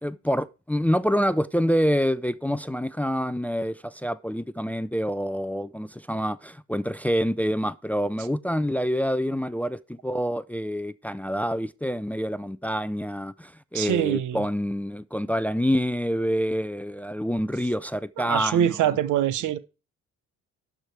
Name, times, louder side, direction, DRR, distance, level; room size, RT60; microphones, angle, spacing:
voice 1, 0.0-18.8, equal, 5° left, 0.4 m, -27 dB
voice 2, 13.7-14.4 18.2-19.6, right 10 dB, 80° right, 1.0 m, -24 dB
12.0 x 5.0 x 4.6 m
cardioid pair, 90°, 30 cm